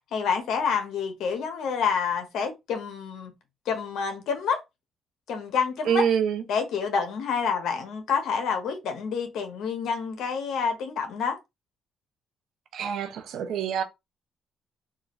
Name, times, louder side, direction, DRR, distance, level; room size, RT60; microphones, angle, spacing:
voice 1, 0.1-3.3 3.7-4.6 5.3-6.0 6.5-11.4, left 6 dB, 80° left, 1.0 m, -28 dB
voice 2, 5.9-6.4 12.7-13.8, right 7 dB, 75° right, 0.7 m, -26 dB
3.7 x 2.4 x 3.1 m
cardioid pair, 90°, 0 cm